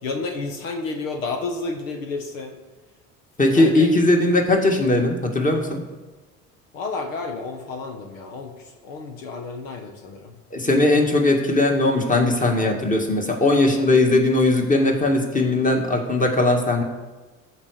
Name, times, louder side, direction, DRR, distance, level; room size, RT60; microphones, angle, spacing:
voice 1, 0.0-2.6 3.5-3.9 6.7-10.3, left 3 dB, 80° left, 4 dB, 1.5 m, -31 dB
voice 2, 3.4-5.8 10.5-16.8, left 2 dB, 20° left, 2 dB, 2.2 m, -19 dB
14.0 x 4.9 x 6.7 m, 1.3 s
hypercardioid pair, 75°, 40 cm